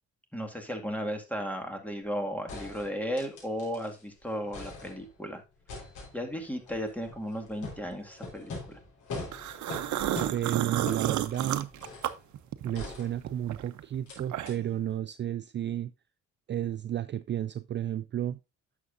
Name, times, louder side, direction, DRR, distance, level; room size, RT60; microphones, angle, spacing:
voice 1, 0.3-5.4 6.1-8.8, equal, 5° left, 2.0 m, -35 dB
sound 1, 2.0-2.1 2.5-4.0 4.3-5.3 5.7-12.2 12.7-13.6 14.1-14.2 14.5-14.6, left 3 dB, 75° left, 4.3 m, -43 dB
sound 2, 9.3-12.9 13.2-14.7, right 12 dB, 70° right, 0.8 m, -31 dB
voice 2, 10.3-11.7 12.6-15.9 16.5-18.4, right 11 dB, 40° right, 0.4 m, -32 dB
10.5 x 6.9 x 2.6 m
cardioid pair, 90°, 30 cm